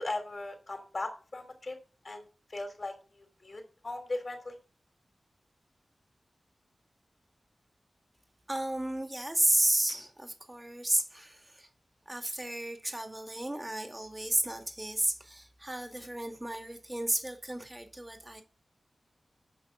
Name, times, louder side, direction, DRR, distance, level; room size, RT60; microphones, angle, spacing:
voice 1, 0.0-1.8 2.0-2.2 2.5-4.6, left 2 dB, 50° left, 3.3 m, -38 dB
voice 2, 8.5-11.7 12.1-18.4, right 1 dB, 20° right, 2.3 m, -32 dB
9.3 x 5.8 x 7.3 m
cardioid pair, 55°, 0 cm